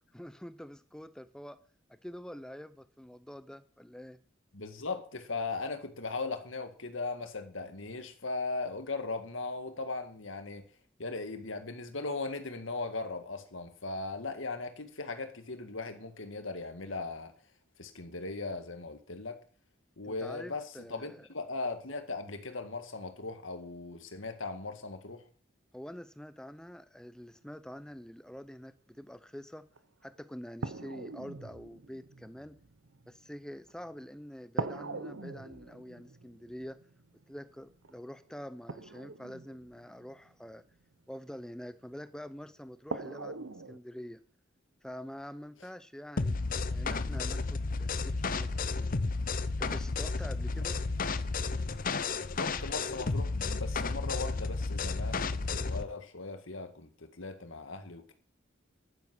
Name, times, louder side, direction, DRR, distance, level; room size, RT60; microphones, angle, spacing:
voice 1, 0.1-1.6 1.9-4.2 20.0-21.3 25.7-29.7 30.0-32.6 33.1-36.8 37.3-40.6 41.1-44.2 44.8-48.5 48.8-49.0 49.6-50.8, equal, 5° left, 0.6 m, -46 dB
voice 2, 4.5-10.7 11.0-17.3 17.8-19.4 20.0-25.2 52.3-58.1, left 3 dB, 80° left, 1.9 m, -38 dB
sound 1, 29.8-29.9 30.6-34.0 34.6-40.7 42.1-42.2 42.9-43.8, right 3 dB, 85° right, 1.0 m, -42 dB
sound 2, 46.2-55.9, left 3 dB, 45° left, 0.7 m, -32 dB
11.0 x 9.9 x 6.1 m
head